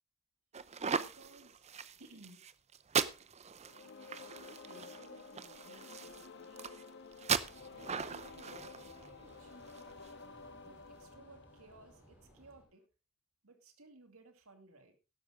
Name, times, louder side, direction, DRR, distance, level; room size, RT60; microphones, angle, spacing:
sound 1, 0.5-10.1, right 6 dB, 30° right, 0.6 m, -39 dB
voice 1, 0.9-1.6 2.0-2.4 4.2-6.9 7.7-9.5 10.6-12.8 13.4-15.0, right 2 dB, 65° right, 6 dB, 2.4 m, -59 dB
sound 2, 3.6-12.5, left 4 dB, 50° left, 1.4 m, -52 dB
sound 3, 7.3-12.6, right 1 dB, 10° right, 5.1 m, -63 dB
12.0 x 11.5 x 3.7 m, 0.29 s
head